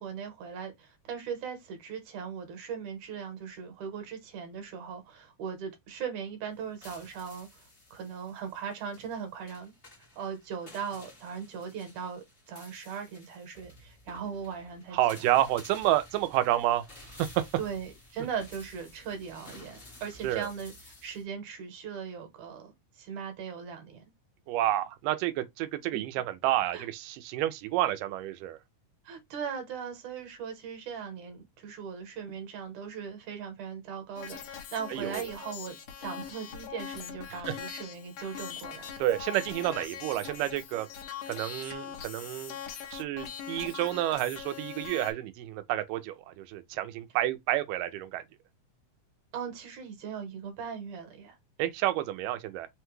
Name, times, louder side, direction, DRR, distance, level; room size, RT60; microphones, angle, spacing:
voice 1, 0.0-7.6 7.9-9.7 10.1-15.3 17.6-24.0 25.9-26.0 26.7-26.9 29.1-38.9 49.3-51.4, right 7 dB, 70° right, 2.4 m, -39 dB
sound 1, 6.5-21.2, left 1 dB, 40° left, 0.7 m, -53 dB
voice 2, 14.9-16.8 17.2-17.3 20.2-20.5 24.5-28.6 34.9-35.2 37.5-37.6 39.0-40.9 41.3-42.6 42.9-48.2 51.6-52.7, right 14 dB, 90° right, 2.2 m, -29 dB
sound 2, 34.2-45.1, left 8 dB, 80° left, 2.3 m, -42 dB
5.6 x 2.2 x 3.0 m
omnidirectional pair, 3.7 m